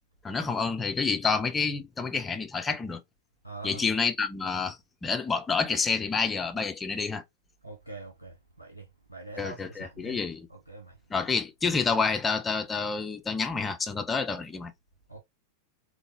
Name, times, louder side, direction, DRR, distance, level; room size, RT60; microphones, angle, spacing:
voice 1, 0.2-3.0 3.6-7.2 9.4-10.5 11.1-14.7, left 5 dB, 15° left, 0.6 m, -28 dB
voice 2, 3.4-3.8 7.6-10.2 10.5-11.0 15.1-15.2, right 2 dB, 90° right, 0.8 m, -44 dB
3.9 x 3.3 x 3.0 m
figure-of-eight pair, 90°, 0 cm